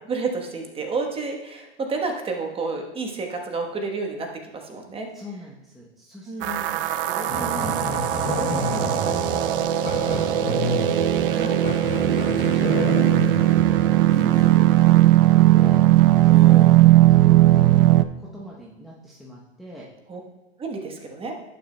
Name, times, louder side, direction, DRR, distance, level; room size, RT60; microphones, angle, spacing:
voice 1, 0.0-5.1 6.3-6.7 11.3-11.6 14.3-14.5 16.3-16.8 20.1-20.2 20.6-21.3, right 4 dB, 15° right, 2 dB, 1.1 m, -30 dB
voice 2, 5.1-8.0 10.1-10.7 12.0-13.8 14.1-15.8 16.2-17.9 18.2-19.8, equal, ahead, -5 dB, 0.8 m, -41 dB
sound 1, 6.4-18.0, right 14 dB, 55° right, 0.5 m, -18 dB
Growling, 7.3-14.6, left 1 dB, 25° left, 3.1 m, -30 dB
11.0 x 9.3 x 2.2 m, 1.2 s
hypercardioid pair, 135°, 35 cm